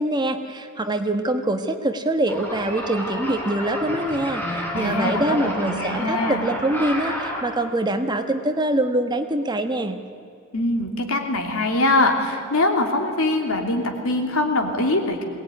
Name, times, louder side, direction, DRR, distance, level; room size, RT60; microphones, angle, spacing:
voice 1, 0.0-10.0, right 1 dB, 20° right, 7 dB, 1.3 m, -24 dB
sound 1, 2.3-7.4, equal, 10° left, 4.0 m, -30 dB
voice 2, 4.7-6.4 10.5-15.2, left 2 dB, 75° left, 3 dB, 3.0 m, -23 dB
22.0 x 18.5 x 9.8 m, 2.4 s
head